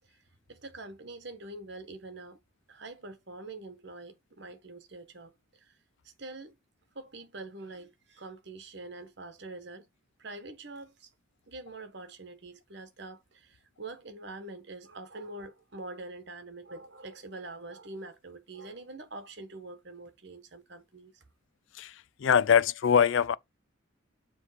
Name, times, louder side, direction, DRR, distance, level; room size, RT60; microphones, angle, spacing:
voice 1, 0.5-2.4 2.7-5.8 6.2-6.5 6.9-9.9 10.2-11.1 11.5-21.2, right 2 dB, 55° right, 1.2 m, -45 dB
voice 2, 21.7-23.4, left 7 dB, 65° left, 0.4 m, -23 dB
7.2 x 3.3 x 4.9 m
head